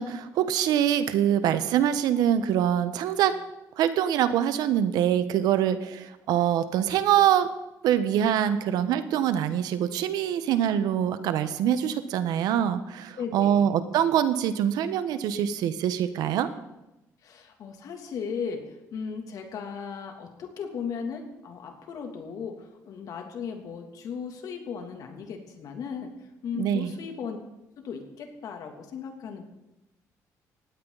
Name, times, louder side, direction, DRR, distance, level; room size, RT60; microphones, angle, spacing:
voice 1, 0.0-3.4 3.8-7.5 7.8-16.5 26.5-26.9, right 10 dB, 85° right, 12 dB, 1.2 m, -24 dB
voice 2, 13.2-13.7 17.2-26.1 26.4-27.4 27.8-29.5, left 6 dB, 65° left, 4 dB, 2.9 m, -36 dB
19.5 x 16.5 x 4.1 m, 0.93 s
cardioid pair, 115°, 7 cm